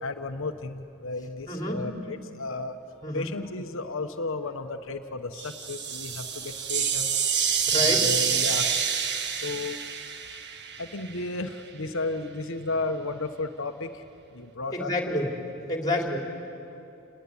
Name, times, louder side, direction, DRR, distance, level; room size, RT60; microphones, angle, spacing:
voice 1, 0.0-2.8 3.1-7.2 7.7-8.7 9.3-9.8 10.8-14.0 14.3-14.9 15.3-15.4, left 3 dB, 60° left, 7 dB, 1.2 m, -33 dB
voice 2, 1.5-1.8 3.0-3.3 7.7-8.1 14.7-15.3 15.7-16.2, left 1 dB, 20° left, 2 dB, 3.6 m, -28 dB
sound 1, 5.3-11.2, right 7 dB, 50° right, 1.5 m, -27 dB
29.0 x 20.5 x 9.9 m, 2.8 s
head